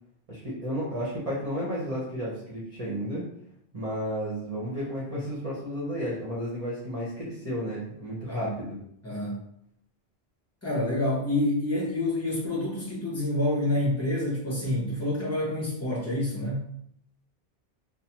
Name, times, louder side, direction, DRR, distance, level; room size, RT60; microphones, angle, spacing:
voice 1, 0.3-3.2 3.7-8.8, equal, 35° right, -8 dB, 0.8 m, -32 dB
voice 2, 9.0-9.4 10.6-16.7, left 1 dB, 15° left, -5 dB, 0.8 m, -28 dB
3.1 x 2.1 x 2.8 m, 0.70 s
omnidirectional pair, 1.1 m